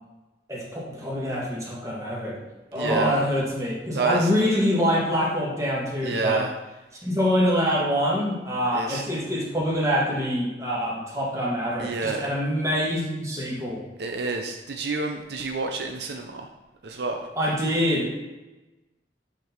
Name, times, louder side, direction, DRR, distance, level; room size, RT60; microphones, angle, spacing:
voice 1, 0.5-2.4 2.7-6.4 7.0-13.8 17.4-18.2, equal, 20° right, -4 dB, 1.7 m, -25 dB
voice 2, 2.7-3.2 3.9-4.3 6.0-6.5 8.7-9.0 11.8-12.3 14.0-16.5 16.8-17.3, right 4 dB, 70° right, 3 dB, 0.6 m, -28 dB
8.0 x 4.0 x 4.5 m, 1.1 s
head